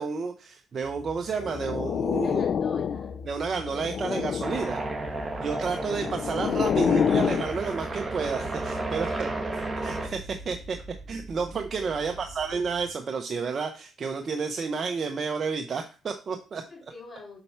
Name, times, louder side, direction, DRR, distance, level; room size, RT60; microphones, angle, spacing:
voice 1, 0.0-2.4 3.2-4.8 5.4-9.3 9.8-10.8 11.1-16.6, right 5 dB, 45° right, 5 dB, 0.9 m, -31 dB
sound 1, 0.8-12.9, left 1 dB, 10° left, 3.3 m, -44 dB
sound 2, 1.4-3.2 3.6-4.7 5.6-7.5, left 7 dB, 60° left, 0.4 m, -27 dB
voice 2, 2.1-3.2 11.7-12.3 16.5-17.4, left 3 dB, 40° left, 0 dB, 2.6 m, -47 dB
sound 3, 4.4-10.1, right 2 dB, 25° right, 1.8 m, -33 dB
7.7 x 4.5 x 5.8 m, 0.35 s
cardioid pair, 90°, 0 cm